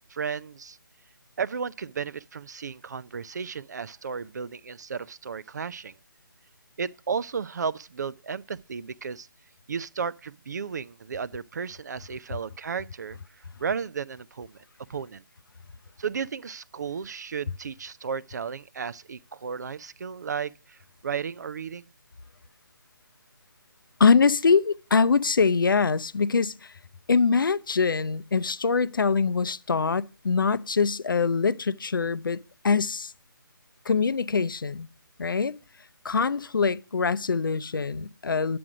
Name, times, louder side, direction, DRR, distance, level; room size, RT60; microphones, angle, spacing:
voice 1, 0.1-0.8 1.4-6.0 6.8-9.3 9.7-14.6 14.9-15.2 16.0-21.9, right 6 dB, 50° right, 0.4 m, -34 dB
voice 2, 24.0-26.7 27.1-32.4 32.6-33.1 33.9-34.9 35.2-35.5 36.0-38.6, left 5 dB, 70° left, 0.5 m, -23 dB
9.5 x 7.8 x 4.9 m
figure-of-eight pair, 155°, 12 cm